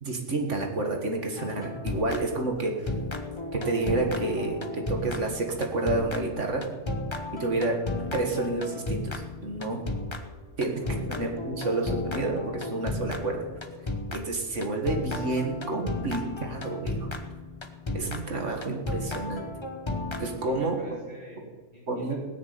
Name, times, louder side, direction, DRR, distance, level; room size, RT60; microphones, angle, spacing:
voice 1, 0.0-2.9 3.5-6.6 7.3-7.8 8.1-9.8 10.6-10.8 11.1-13.5 14.1-17.1 17.9-19.5 20.2-20.8 21.9-22.1, right 2 dB, 70° right, 2 dB, 2.1 m, -29 dB
sound 1, 1.4-2.6 2.9-20.6, left 2 dB, 25° left, 1.0 m, -34 dB
voice 2, 10.8-11.1 20.4-22.1, equal, 45° right, -4 dB, 3.1 m, -47 dB
17.5 x 6.7 x 9.4 m, 1.4 s
omnidirectional pair, 1.3 m